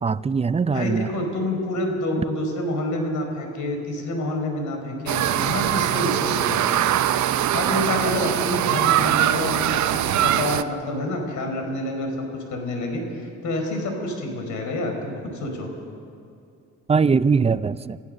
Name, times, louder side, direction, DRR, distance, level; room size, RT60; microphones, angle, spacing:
voice 1, 0.0-1.1 16.9-18.0, right 5 dB, 20° right, 15 dB, 0.5 m, -21 dB
voice 2, 0.7-6.7 7.5-15.7, left 1 dB, 75° left, 3 dB, 5.0 m, -28 dB
sound 1, 5.1-10.6, right 11 dB, 70° right, 0.8 m, -22 dB
28.0 x 15.5 x 6.6 m, 2.5 s
cardioid pair, 90°, 30 cm